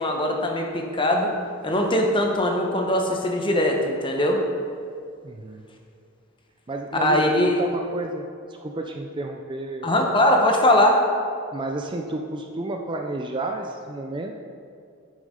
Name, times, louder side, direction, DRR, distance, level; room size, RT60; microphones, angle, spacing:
voice 1, 0.0-1.3 1.6-4.4 7.0-7.5 9.8-11.0, left 1 dB, 25° left, 1 dB, 0.9 m, -21 dB
voice 2, 5.2-5.7 6.7-10.1 11.5-14.3, right 2 dB, 25° right, 3 dB, 0.4 m, -31 dB
9.2 x 6.3 x 3.8 m, 2.3 s
head